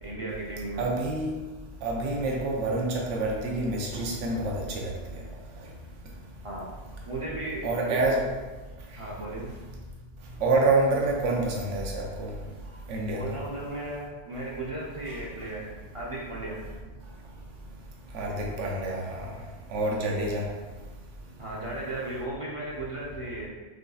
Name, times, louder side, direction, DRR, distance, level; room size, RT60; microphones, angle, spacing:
voice 1, 0.0-0.8 6.4-6.7 7.1-8.3 9.0-9.5 13.1-15.7 15.9-16.7 20.1-20.2 21.4-23.5, right 2 dB, 35° right, -5 dB, 0.6 m, -35 dB
voice 2, 0.8-1.4 1.8-4.9 7.6-8.2 10.4-12.3 12.9-13.2 15.1-15.2 18.1-19.3 19.7-20.5, right 2 dB, 75° right, -1 dB, 1.0 m, -27 dB
6.0 x 2.6 x 2.3 m, 1.2 s
omnidirectional pair, 1.3 m